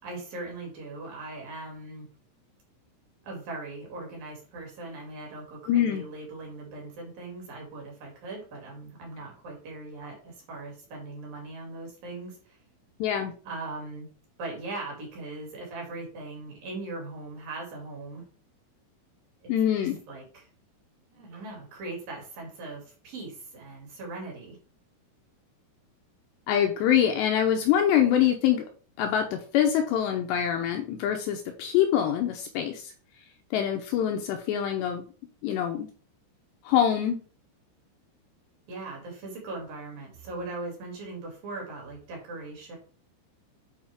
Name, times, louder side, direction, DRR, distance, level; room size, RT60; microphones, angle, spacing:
voice 1, 0.0-2.1 3.2-12.6 13.5-14.1 14.4-18.2 19.4-19.5 19.8-20.5 21.1-24.6 38.7-42.8, right 2 dB, 50° right, -2 dB, 4.0 m, -39 dB
voice 2, 5.7-6.0 13.0-13.3 19.5-20.0 26.5-28.6 29.0-32.9 33.5-35.1 35.4-35.9 36.6-37.2, left 10 dB, 80° left, 4 dB, 2.7 m, -24 dB
8.7 x 4.8 x 3.6 m, 0.40 s
omnidirectional pair, 5.5 m